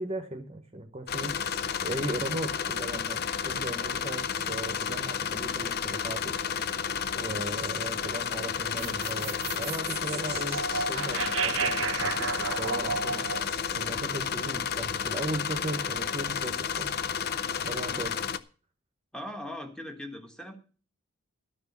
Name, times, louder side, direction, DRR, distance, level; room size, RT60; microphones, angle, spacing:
voice 1, 0.0-6.3 7.1-10.6 10.9-17.0 17.6-18.2, right 1 dB, 25° right, 6 dB, 1.0 m, -37 dB
sound 1, 1.1-18.4, left 7 dB, 50° left, 0.5 m, -32 dB
sound 2, 8.8-15.1, right 5 dB, 70° right, 0.7 m, -33 dB
voice 2, 19.1-20.6, left 1 dB, 5° left, 5 dB, 1.4 m, -40 dB
12.5 x 6.1 x 7.2 m, 0.38 s
head